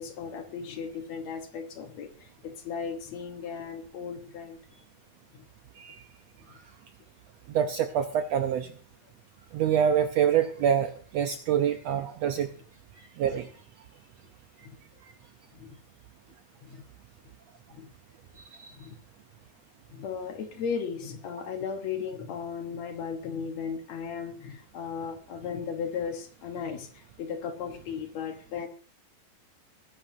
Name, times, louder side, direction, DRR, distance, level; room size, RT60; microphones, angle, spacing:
voice 1, 0.0-4.6 5.3-5.5 14.6-14.8 15.5-15.8 16.6-16.8 17.7-17.9 18.8-19.0 19.9-28.7, left 6 dB, 60° left, 5 dB, 2.2 m, -36 dB
voice 2, 7.5-8.7 9.5-12.5 13.2-13.5 18.6-18.7, right 8 dB, 75° right, 7 dB, 1.6 m, -26 dB
21.0 x 11.0 x 2.7 m, 0.42 s
omnidirectional pair, 3.7 m